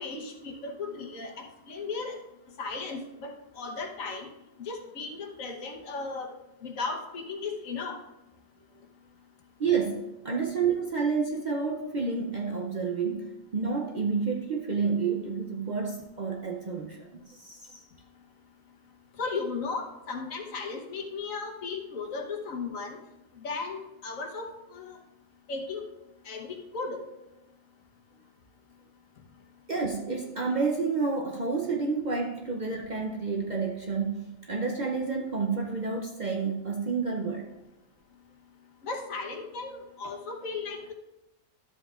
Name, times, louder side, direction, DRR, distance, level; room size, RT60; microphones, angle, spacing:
voice 1, 0.0-2.2 2.6-4.3 4.6-6.3 6.6-8.0 19.2-23.0 23.4-25.0 25.5-25.8 26.2-27.0 38.8-40.9, left 4 dB, 75° left, 1.5 m, -36 dB
voice 2, 9.6-17.7 29.7-37.5 40.0-40.1, right 5 dB, 50° right, 0.6 m, -30 dB
12.5 x 7.7 x 2.4 m
omnidirectional pair, 1.4 m